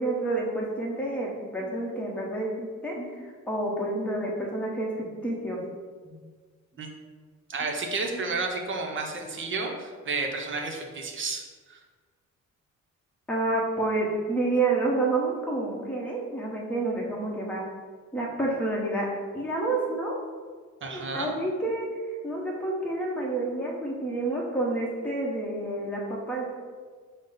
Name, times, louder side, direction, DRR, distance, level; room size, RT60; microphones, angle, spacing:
voice 1, 0.0-5.6 6.0-6.1 8.1-8.2 13.3-17.6 18.1-19.1 19.3-20.1 20.8-21.9 22.2-26.4, right 2 dB, 5° left, -3 dB, 0.8 m, -29 dB
voice 2, 7.5-11.8 20.8-21.3, right 3 dB, 40° right, 2 dB, 0.7 m, -31 dB
5.1 x 2.0 x 3.8 m, 1.5 s
cardioid pair, 90°, 30 cm